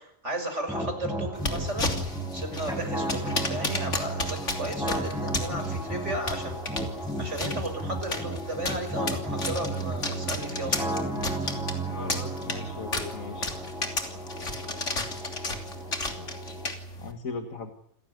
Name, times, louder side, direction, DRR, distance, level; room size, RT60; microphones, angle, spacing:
voice 1, 0.0-1.9 2.3-6.6 7.2-10.8, right 1 dB, 60° right, 6 dB, 6.4 m, -34 dB
sound 1, 0.7-16.7, right 1 dB, ahead, 5.9 m, -34 dB
sound 2, 1.3-17.1, left 2 dB, 60° left, 3.5 m, -34 dB
voice 2, 11.9-13.5 16.2-16.3 17.0-17.7, left 4 dB, 85° left, 5 dB, 2.2 m, -38 dB
28.5 x 17.0 x 9.4 m, 0.73 s
omnidirectional pair, 1.4 m